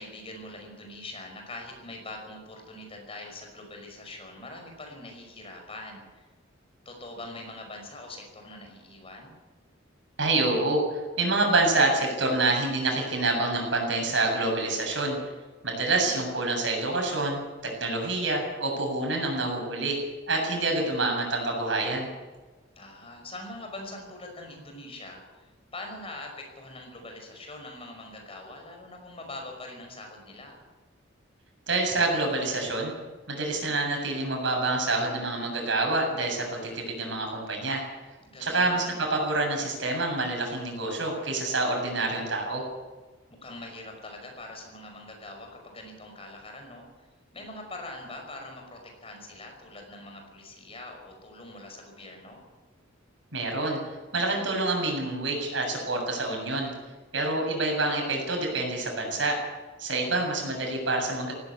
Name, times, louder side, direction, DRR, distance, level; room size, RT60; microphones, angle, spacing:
voice 1, 0.0-6.3 6.9-9.3 15.9-16.4 22.8-30.6 38.2-39.0 43.4-47.1 47.3-52.4 59.9-60.6, left 2 dB, 30° left, 3 dB, 5.5 m, -43 dB
voice 2, 10.2-15.2 15.6-20.0 20.3-22.1 31.7-32.9 33.3-37.8 38.4-42.7 53.3-53.8 54.1-56.7 57.1-59.4 59.8-61.3, right 2 dB, 70° right, 1 dB, 7.6 m, -27 dB
17.5 x 16.0 x 9.8 m, 1.3 s
head